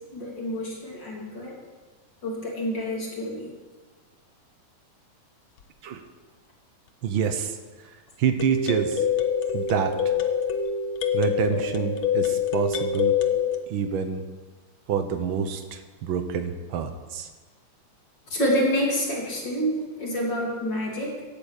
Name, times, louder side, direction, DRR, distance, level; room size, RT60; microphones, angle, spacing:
voice 1, 0.1-1.6 2.2-3.5 18.3-21.3, equal, 35° left, -2 dB, 3.7 m, -28 dB
sound 1, 5.6-5.7 8.4-13.6, left 7 dB, 80° left, 1.1 m, -25 dB
voice 2, 7.0-7.5 8.2-8.9 9.5-9.9 11.1-13.1 13.7-14.2 14.9-15.6 16.0-17.2, right 7 dB, 75° right, 8 dB, 1.1 m, -26 dB
15.5 x 9.1 x 8.3 m, 1.3 s
omnidirectional pair, 3.7 m